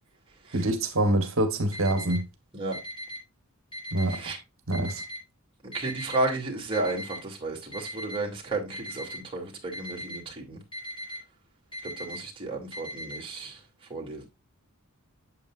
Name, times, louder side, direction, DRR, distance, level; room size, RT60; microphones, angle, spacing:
voice 1, 0.5-2.2 3.9-4.2 4.7-5.0, right 1 dB, 60° right, 1.2 m, -25 dB
Alarm, 1.7-2.2 2.7-3.2 3.7-4.2 4.7-5.2 5.7-6.2 6.7-7.2 7.7-8.2 8.7-9.2 9.7-10.2 10.7-11.2 11.7-12.2 12.7-13.2, equal, 25° left, 4.7 m, -38 dB
voice 2, 5.6-10.6 11.8-13.6 13.9-14.3, right 2 dB, 25° right, 2.6 m, -33 dB
8.7 x 7.5 x 2.5 m
head